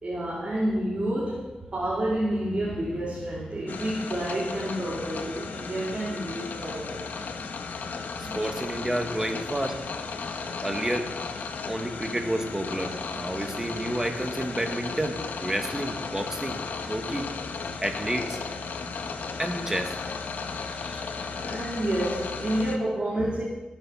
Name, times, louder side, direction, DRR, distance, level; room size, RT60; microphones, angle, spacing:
voice 1, 0.0-7.0 10.1-10.7 11.5-11.8 20.4-23.5, right 1 dB, 40° right, -4 dB, 2.8 m, -30 dB
sound 1, 3.7-22.8, left 4 dB, 85° left, 1.3 m, -35 dB
voice 2, 8.2-9.8 10.6-11.1 11.7-16.6 16.9-17.3 17.8-18.4 19.4-20.0, right 1 dB, 15° right, 4 dB, 1.7 m, -30 dB
17.5 x 7.8 x 6.3 m, 1.1 s
wide cardioid pair, 105°, 3 cm